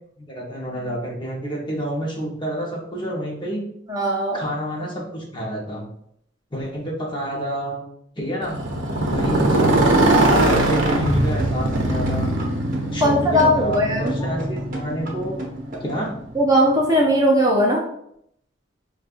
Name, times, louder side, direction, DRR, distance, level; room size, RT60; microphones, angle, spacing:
voice 1, 0.2-3.6 4.3-5.8 6.5-7.8 8.2-8.6 9.0-12.3 12.9-15.3 15.8-16.1, right 1 dB, 25° left, -3 dB, 0.9 m, -29 dB
voice 2, 3.9-4.4 13.0-14.3 16.4-17.8, equal, 20° right, -2 dB, 0.5 m, -18 dB
Motorcycle, 8.4-16.5, right 1 dB, 80° right, 0.7 m, -21 dB
sound 1, 10.7-16.1, right 2 dB, 45° right, 0.8 m, -34 dB
5.1 x 2.4 x 2.5 m, 0.72 s
head